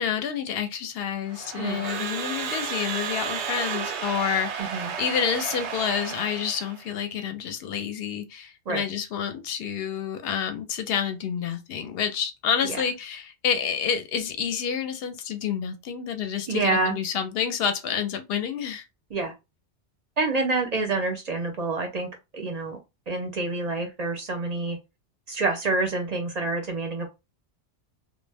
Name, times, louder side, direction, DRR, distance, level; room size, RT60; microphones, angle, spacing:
voice 1, 0.0-18.9, left 7 dB, 65° left, 0.7 m, -29 dB
Crowd / Alarm, 1.3-6.8, right 6 dB, 85° right, 0.9 m, -32 dB
voice 2, 16.5-17.0 19.1-19.3 20.2-22.1 22.3-22.8 23.1-24.8 25.3-27.1, right 3 dB, 50° right, 0.5 m, -27 dB
2.1 x 2.0 x 3.3 m
omnidirectional pair, 1.1 m